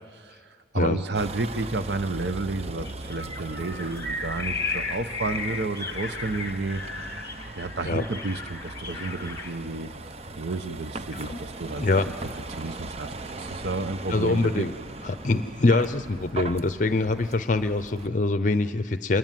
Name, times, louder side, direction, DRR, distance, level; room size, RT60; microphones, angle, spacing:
voice 1, 0.1-6.8 7.6-9.9 10.4-11.8 12.5-14.7, right 3 dB, 65° right, 10 dB, 0.8 m, -31 dB
Vehicle, 1.1-18.1, right 2 dB, 35° right, 0.7 m, -39 dB
sound 1, 2.8-9.5, left 3 dB, 15° left, 1.2 m, -35 dB
voice 2, 11.8-12.1 14.1-14.7 15.0-19.2, left 2 dB, 40° left, 11 dB, 0.6 m, -24 dB
27.5 x 21.5 x 9.2 m, 2.1 s
head